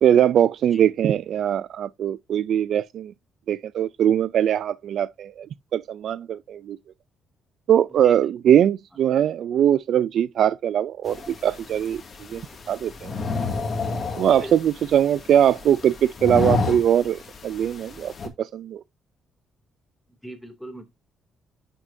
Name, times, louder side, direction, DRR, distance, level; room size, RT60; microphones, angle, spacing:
voice 1, 0.0-3.1 3.5-5.5 5.7-6.8 7.7-12.0 12.3-12.4 12.7-13.1 14.2-18.1 18.4-18.8, right 10 dB, 70° right, 0.4 m, -21 dB
sound 1, 11.0-18.3, left 3 dB, 45° left, 2.2 m, -31 dB
voice 2, 20.2-20.9, right 1 dB, 5° left, 2.5 m, -39 dB
10.5 x 6.3 x 2.7 m
cardioid pair, 90°, 0 cm